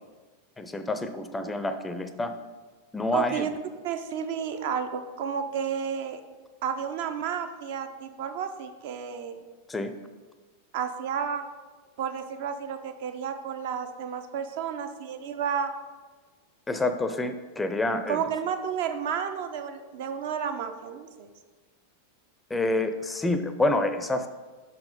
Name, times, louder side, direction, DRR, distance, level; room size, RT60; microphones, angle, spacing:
voice 1, 0.6-2.3 2.9-3.5 9.7-9.9 16.7-18.2 22.5-24.3, left 2 dB, 10° left, 9 dB, 0.5 m, -28 dB
voice 2, 3.1-3.5 3.8-6.2 6.6-9.4 10.7-11.4 12.0-15.7 18.1-21.3, right 7 dB, 50° right, 7 dB, 0.5 m, -31 dB
5.8 x 4.1 x 5.0 m, 1.4 s
figure-of-eight pair, 90°, 0 cm